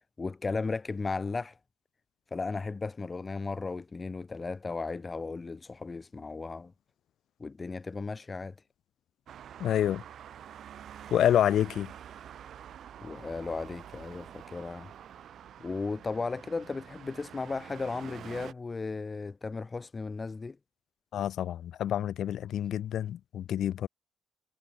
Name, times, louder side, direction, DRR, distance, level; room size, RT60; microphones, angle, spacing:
voice 1, 0.2-1.6 2.3-6.7 7.4-8.5 13.0-14.9 15.6-20.6, left 4 dB, 25° left, 1.1 m, -35 dB
Traffic noise roadway noise, 9.3-18.5, right 9 dB, 65° right, 6.4 m, -47 dB
voice 2, 9.6-10.0 11.1-11.9 21.1-23.9, left 11 dB, 70° left, 1.5 m, -28 dB
cardioid pair, 90°, 0 cm